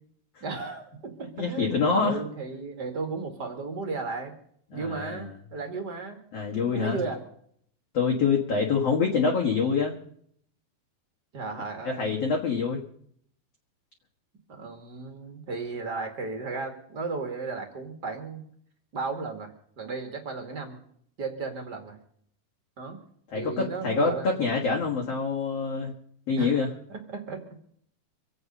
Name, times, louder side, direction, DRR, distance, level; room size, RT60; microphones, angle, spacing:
voice 1, 0.4-4.3 4.7-6.2 6.5-7.2 11.3-12.1 14.5-18.4 18.9-20.8 21.2-22.0 22.8-23.0 23.3-24.3 26.4-26.6 26.9-27.6, right 4 dB, 35° right, 5 dB, 1.9 m, -35 dB
voice 2, 1.4-2.2 4.7-5.2 6.3-7.0 7.9-10.0 11.8-12.8 23.3-25.9 26.3-26.7, left 5 dB, 50° left, -1 dB, 2.2 m, -26 dB
25.5 x 8.8 x 5.4 m, 0.65 s
omnidirectional pair, 4.5 m